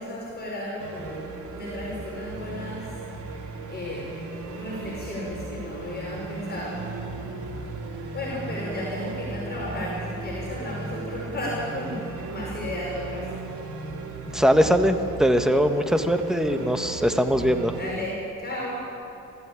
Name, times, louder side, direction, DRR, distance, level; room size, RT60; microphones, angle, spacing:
voice 1, 0.0-7.0 7.6-13.4 17.7-19.0, left 1 dB, 35° left, -4 dB, 5.9 m, -34 dB
sound 1, 0.8-17.9, right 3 dB, 75° right, 3.3 m, -36 dB
voice 2, 14.3-17.7, equal, ahead, 6 dB, 1.5 m, -21 dB
20.5 x 15.0 x 8.8 m, 2.8 s
cardioid pair, 90°, 30 cm